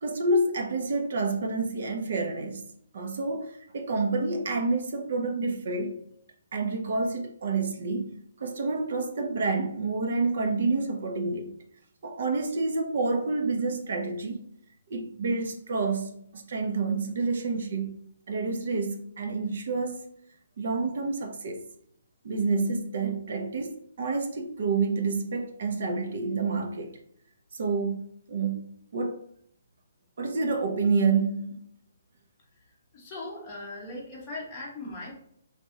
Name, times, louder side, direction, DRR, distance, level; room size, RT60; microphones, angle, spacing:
voice 1, 0.0-2.6 2.9-6.0 6.5-8.1 8.4-11.5 12.0-14.4 14.9-18.0 18.3-20.0 20.6-21.6 22.2-27.0 27.5-29.2 30.2-31.6, right 3 dB, 45° right, 0.7 m, -28 dB
voice 2, 32.9-35.1, left 2 dB, 15° left, 1.1 m, -39 dB
4.2 x 3.3 x 2.8 m
hypercardioid pair, 175°, 0 cm